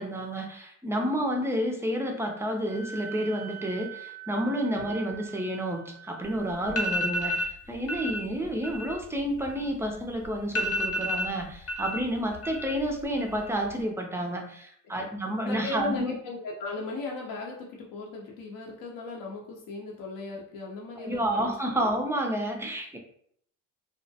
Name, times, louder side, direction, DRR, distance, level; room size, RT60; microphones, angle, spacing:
voice 1, 0.0-16.1 21.0-23.0, equal, 5° right, 1 dB, 0.4 m, -30 dB
Wind instrument woodwind instrument, 2.7-7.4, right 9 dB, 65° right, 0.5 m, -44 dB
sound 1, 6.2-6.3 6.7-7.5 7.9-8.2 8.5-10.0 10.2-10.3 10.5-12.0 12.3-12.9 13.2-13.7, equal, 40° left, 0.8 m, -30 dB
voice 2, 15.4-21.5 21.8-21.9, left 3 dB, 65° left, -2 dB, 0.6 m, -37 dB
2.3 x 2.1 x 2.6 m, 0.66 s
supercardioid pair, 80°, 38 cm